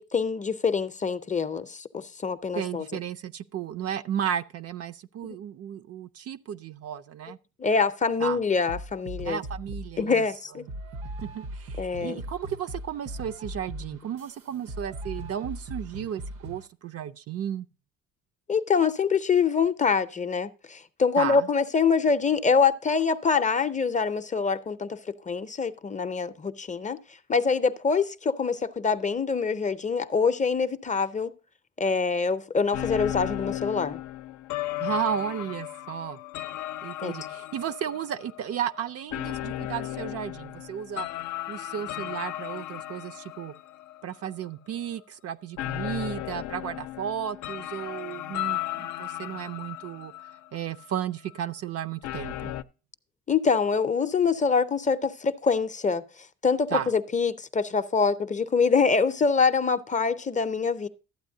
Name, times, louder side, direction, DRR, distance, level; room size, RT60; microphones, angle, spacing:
voice 1, 0.0-2.9 7.6-9.4 10.0-10.7 11.8-12.2 18.5-25.0 25.3-27.0 27.3-31.3 31.8-34.0 37.0-37.1 53.3-56.0 56.4-60.9, left 5 dB, 25° left, 0.5 m, -25 dB
voice 2, 2.6-7.4 8.2-8.4 9.2-10.2 11.2-17.7 21.2-21.5 34.8-36.2 36.8-41.1 41.5-43.5 44.0-50.1 50.5-52.5 56.7-56.9, right 9 dB, 55° right, 0.4 m, -34 dB
sound 1, 8.7-10.0 10.7-16.7, right 1 dB, 85° right, 1.0 m, -39 dB
sound 2, 32.7-44.5 44.8-45.0 45.6-51.0 51.4-51.5 52.0-52.6, left 14 dB, 80° left, 0.5 m, -35 dB
12.5 x 8.2 x 2.6 m
cardioid pair, 90°, 30 cm